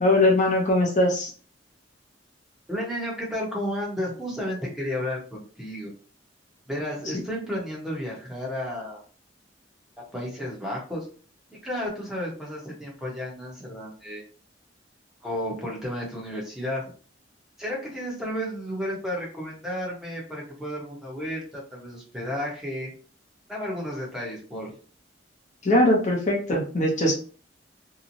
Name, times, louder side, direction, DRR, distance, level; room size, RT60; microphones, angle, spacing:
voice 1, 0.0-1.3 25.6-27.1, left 1 dB, 40° left, -1 dB, 0.6 m, -21 dB
voice 2, 2.7-5.9 6.7-9.0 10.1-11.1 11.6-14.2 15.2-16.8 17.6-22.9 23.5-24.7, equal, ahead, -4 dB, 0.8 m, -32 dB
2.8 x 2.0 x 2.5 m, 0.39 s
head